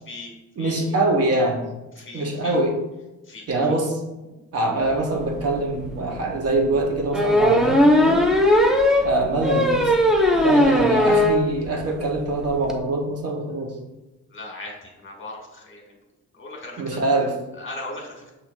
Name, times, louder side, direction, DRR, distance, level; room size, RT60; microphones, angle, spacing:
voice 1, 0.6-1.6 2.1-2.7 3.5-4.0 4.5-8.2 9.0-9.9 10.3-13.7 16.8-17.4, right 2 dB, 55° right, -1 dB, 1.1 m, -24 dB
voice 2, 1.9-2.6 3.2-3.5 14.3-16.0 16.3-17.0 17.5-18.3, left 2 dB, 40° left, 0 dB, 1.4 m, -38 dB
sound 1, 5.4-5.5 5.8-5.9 7.1-11.4 11.8-11.9 12.2-12.3 12.4-12.7, left 1 dB, ahead, 0.4 m, -18 dB
5.7 x 2.8 x 2.6 m, 1.0 s
cardioid pair, 90°, 30 cm